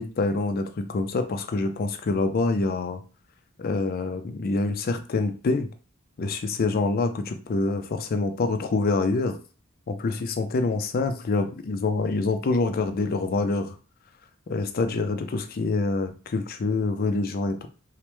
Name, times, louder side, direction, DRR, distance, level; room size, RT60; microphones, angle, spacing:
voice 1, 0.0-3.0 3.6-5.7 6.2-9.4 9.9-13.8 14.5-17.7, left 3 dB, 45° left, 7 dB, 0.4 m, -26 dB
3.2 x 2.1 x 3.0 m, 0.35 s
head